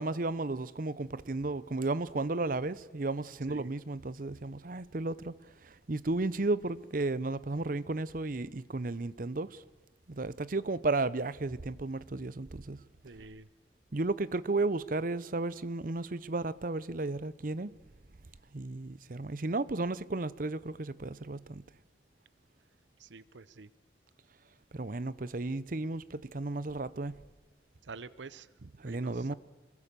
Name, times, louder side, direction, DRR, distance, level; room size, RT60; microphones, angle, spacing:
voice 1, 0.0-5.3 5.9-9.6 10.1-12.8 13.9-17.7 18.5-21.6 24.7-27.1 28.8-29.3, right 2 dB, 50° right, 0.7 m, -33 dB
voice 2, 13.0-13.5 23.0-23.7 27.8-29.3, right 4 dB, 80° right, 0.7 m, -48 dB
27.0 x 22.5 x 6.8 m
head